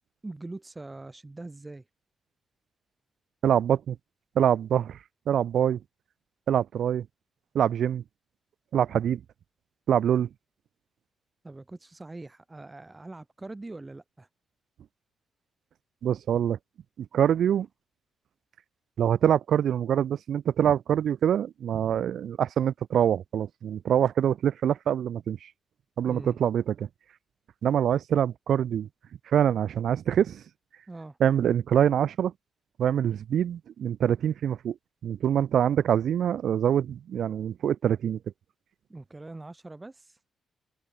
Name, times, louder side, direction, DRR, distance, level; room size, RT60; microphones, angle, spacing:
voice 1, 0.2-1.8 11.4-14.3 26.1-26.4 30.9-31.2 38.9-40.2, right 2 dB, 15° right, 1.7 m, -42 dB
voice 2, 3.4-4.0 4.4-5.0 5.3-5.8 6.5-7.1 7.5-8.0 8.7-9.2 9.9-10.3 16.0-16.6 17.0-17.7 19.0-25.4 26.0-26.9 27.6-28.9 29.3-30.4 31.2-32.3 32.8-34.8 35.0-38.2, right 9 dB, 70° right, 0.4 m, -25 dB
cardioid pair, 115°, 0 cm